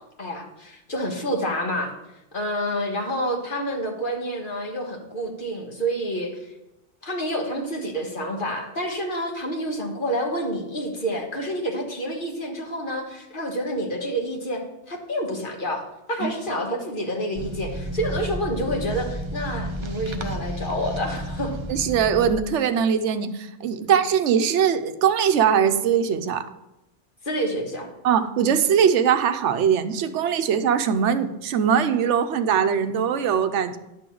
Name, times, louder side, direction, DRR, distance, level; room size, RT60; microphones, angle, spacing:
voice 1, 0.0-1.9 2.3-6.5 7.0-14.6 14.9-21.5 23.8-23.9 27.2-27.9, equal, 45° left, 1 dB, 1.5 m, -28 dB
sound 1, 17.4-22.4, right 1 dB, 35° right, 0.5 m, -32 dB
voice 2, 21.7-26.5 28.0-33.8, right 7 dB, 80° right, 10 dB, 0.9 m, -21 dB
11.0 x 3.8 x 7.5 m, 0.92 s
omnidirectional pair, 1.2 m